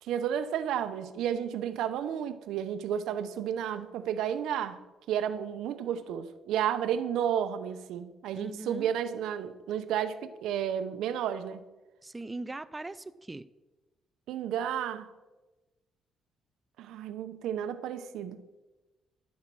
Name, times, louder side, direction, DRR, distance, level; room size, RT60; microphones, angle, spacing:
voice 1, 0.0-4.8 5.1-11.6 14.3-15.1 16.8-18.4, right 9 dB, 85° right, 11 dB, 0.8 m, -32 dB
voice 2, 8.3-8.9 12.0-13.4, right 2 dB, 15° right, 13 dB, 0.3 m, -40 dB
11.5 x 7.3 x 6.1 m, 1.1 s
cardioid pair, 125°, 0 cm